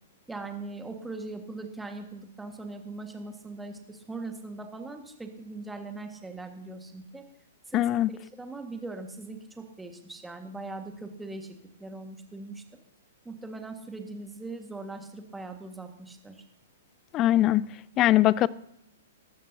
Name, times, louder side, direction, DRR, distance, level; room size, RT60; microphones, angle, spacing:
voice 1, 0.3-7.2 7.7-7.8 8.4-12.6 13.3-16.4, right 3 dB, 5° right, 1.8 m, -40 dB
voice 2, 7.7-8.1 17.1-18.5, left 14 dB, 25° left, 0.5 m, -22 dB
22.5 x 12.5 x 2.9 m
figure-of-eight pair, 110°, 0 cm